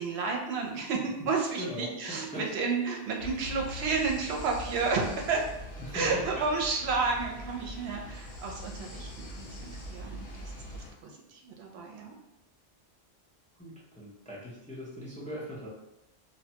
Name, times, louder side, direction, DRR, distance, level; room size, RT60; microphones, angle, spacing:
voice 1, 0.0-5.5 5.9-9.1 9.4-12.1, right 4 dB, 75° right, 1 dB, 0.8 m, -31 dB
voice 2, 1.5-2.4 5.8-6.4 13.5-15.7, equal, 10° left, -6 dB, 0.4 m, -40 dB
sound 1, 3.2-10.9, left 1 dB, 90° left, 1.0 m, -42 dB
2.6 x 2.2 x 2.8 m, 0.91 s
omnidirectional pair, 1.1 m